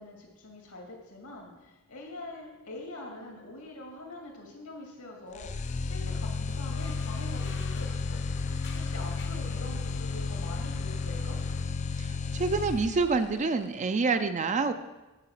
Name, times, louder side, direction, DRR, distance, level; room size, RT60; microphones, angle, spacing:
voice 1, 0.0-8.2 8.7-11.4, left 2 dB, 85° left, 0 dB, 2.4 m, -44 dB
sound 1, 5.3-13.3, left 4 dB, 35° left, 0.4 m, -33 dB
sound 2, 6.4-11.6, left 3 dB, 55° left, 0.9 m, -45 dB
voice 2, 12.3-14.7, right 4 dB, 35° right, 9 dB, 0.4 m, -27 dB
10.0 x 4.8 x 7.5 m, 1.1 s
head